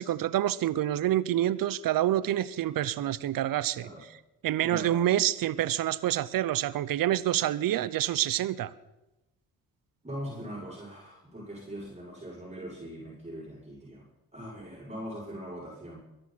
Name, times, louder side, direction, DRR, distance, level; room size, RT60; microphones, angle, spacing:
voice 1, 0.0-3.9 4.4-8.7, right 12 dB, 65° right, 17 dB, 0.9 m, -27 dB
voice 2, 4.6-5.0 10.0-14.1 14.3-16.0, equal, 20° right, -5 dB, 6.7 m, -41 dB
23.0 x 11.0 x 4.3 m, 0.97 s
hypercardioid pair, 55°, 37 cm